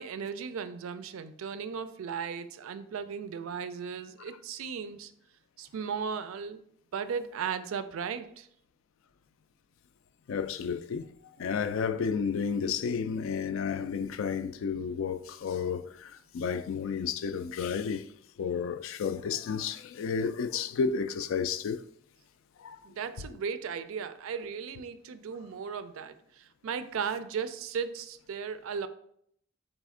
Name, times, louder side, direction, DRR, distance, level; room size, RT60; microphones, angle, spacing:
voice 1, 0.0-5.1 5.6-6.6 6.9-8.5 22.8-28.9, right 6 dB, 85° right, 0.4 m, -36 dB
voice 2, 10.3-18.1 18.4-21.8 22.6-22.8, left 6 dB, 75° left, 0.3 m, -32 dB
4.1 x 3.4 x 3.6 m
head